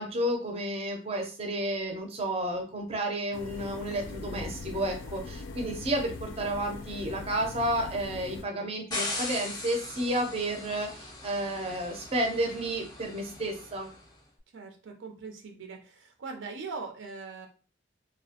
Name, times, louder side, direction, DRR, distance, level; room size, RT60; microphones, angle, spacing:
voice 1, 0.0-13.9, right 1 dB, 35° right, 2 dB, 0.5 m, -31 dB
sound 1, 3.3-8.4, left 3 dB, 85° left, 0.3 m, -41 dB
sound 2, 8.9-14.0, left 2 dB, 20° left, 0.5 m, -39 dB
voice 2, 14.5-17.5, right 4 dB, 85° right, 3 dB, 0.5 m, -41 dB
2.2 x 2.0 x 2.7 m, 0.36 s
head